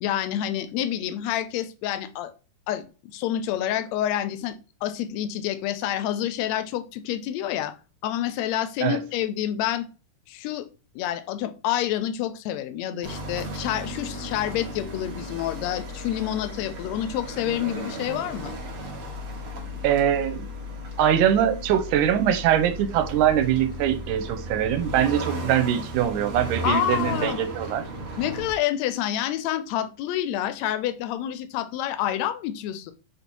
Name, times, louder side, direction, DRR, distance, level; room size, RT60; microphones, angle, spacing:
voice 1, 0.0-2.3 2.7-2.8 3.1-4.6 4.8-7.7 8.0-9.9 10.3-10.7 11.0-18.6 26.6-27.4 28.2-32.9, left 11 dB, 75° left, 1.7 m, -28 dB
sound 1, 13.0-28.5, equal, 50° right, 2.2 m, -35 dB
voice 2, 19.8-20.5 21.0-27.8, right 10 dB, 90° right, 2.3 m, -22 dB
6.9 x 3.4 x 4.5 m
omnidirectional pair, 3.6 m